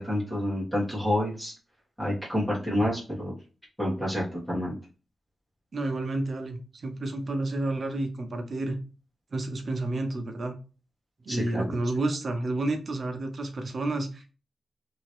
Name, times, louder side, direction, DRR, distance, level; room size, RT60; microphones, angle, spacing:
voice 1, 0.0-1.5 2.0-3.3 3.8-4.7 11.3-11.6, left 1 dB, 5° left, -7 dB, 1.4 m, -28 dB
voice 2, 5.7-8.8 9.3-10.5 11.2-14.3, right 2 dB, 45° right, 5 dB, 0.6 m, -30 dB
2.8 x 2.8 x 3.0 m, 0.35 s
wide cardioid pair, 155°, 0 cm